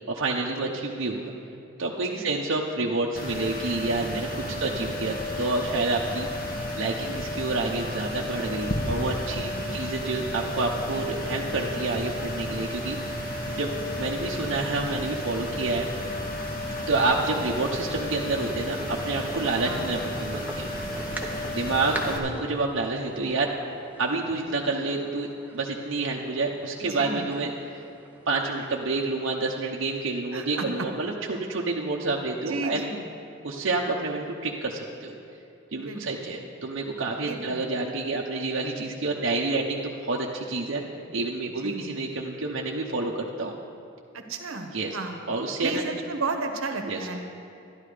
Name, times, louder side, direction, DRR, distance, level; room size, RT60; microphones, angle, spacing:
voice 1, 0.1-1.3 1.8-6.3 6.7-13.7 14.0-15.9 16.8-20.7 21.5-23.5 24.0-27.8 28.3-32.8 33.4-35.2 35.7-40.8 41.1-43.5 44.7-45.0 45.3-45.8 46.9-47.0, right 3 dB, 60° right, -2 dB, 0.8 m, -28 dB
sound 1, 3.2-22.2, left 1 dB, 45° left, 1.6 m, -32 dB
voice 2, 9.6-9.9 17.3-17.6 19.6-20.0 20.8-21.2 26.8-27.4 30.3-30.9 32.4-33.1 35.7-36.3 37.2-37.7 41.6-42.0 44.1-45.2 45.6-47.2, right 3 dB, 80° right, 5 dB, 1.1 m, -34 dB
sound 2, 18.8-28.8, right 1 dB, 10° right, 0.9 m, -42 dB
11.5 x 11.5 x 5.0 m, 2.7 s
head